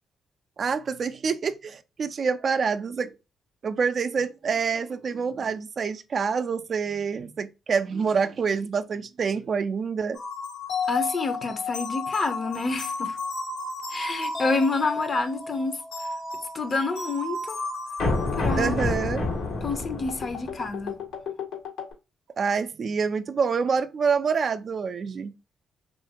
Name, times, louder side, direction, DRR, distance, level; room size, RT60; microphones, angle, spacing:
voice 1, 0.6-3.1 3.6-10.2 18.5-19.3 22.4-25.3, right 5 dB, 50° right, 0.3 m, -27 dB
sound 1, 10.2-21.9, left 3 dB, 85° left, 1.2 m, -31 dB
voice 2, 10.9-13.2 13.9-15.8 16.5-17.6 18.4-18.8 19.6-21.0, left 3 dB, 40° left, 0.6 m, -28 dB
2.8 x 2.4 x 2.8 m
supercardioid pair, 70°, 0 cm